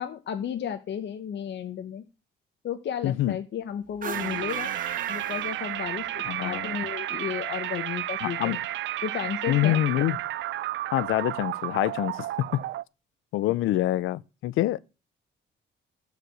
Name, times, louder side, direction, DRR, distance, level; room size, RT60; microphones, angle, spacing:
voice 1, 0.0-2.0 2.6-4.7 5.1-8.6 9.0-9.8, left 9 dB, 60° left, 1.1 m, -33 dB
voice 2, 3.0-3.4 6.3-6.8 8.2-8.6 9.5-10.2 10.9-12.3 12.5-12.6 13.3-14.8, left 15 dB, 90° left, 0.6 m, -26 dB
sound 1, 3.9-6.2, right 7 dB, 45° right, 1.1 m, -36 dB
sound 2, 4.1-12.8, right 14 dB, 70° right, 0.5 m, -32 dB
13.5 x 5.0 x 6.2 m
cardioid pair, 90°, 20 cm